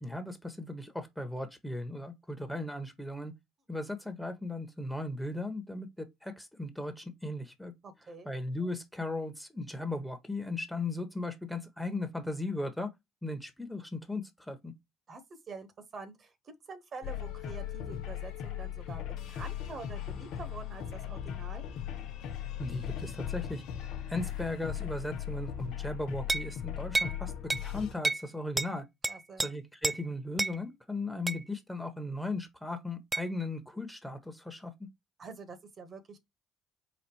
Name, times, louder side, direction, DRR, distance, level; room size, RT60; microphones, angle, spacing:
voice 1, 0.0-3.3 3.7-7.7 8.2-12.9 13.2-14.7 22.6-23.6 24.1-27.3 27.6-28.9 29.4-34.7, left 2 dB, 5° left, 1.2 m, -37 dB
voice 2, 7.8-8.3 15.1-15.2 15.5-15.7 15.9-21.6 29.1-29.5 35.2-36.2, right 4 dB, 45° right, 1.3 m, -46 dB
sound 1, 17.0-28.0, left 10 dB, 70° left, 0.8 m, -38 dB
sound 2, 26.3-26.5 26.9-27.2 27.5-27.7 28.0-28.3 28.6-28.7 29.0-29.5 29.8-30.0 30.4-30.6 31.3-31.4 33.1-33.3, right 2 dB, 20° right, 0.4 m, -30 dB
4.2 x 2.6 x 4.6 m
hypercardioid pair, 60°, 0 cm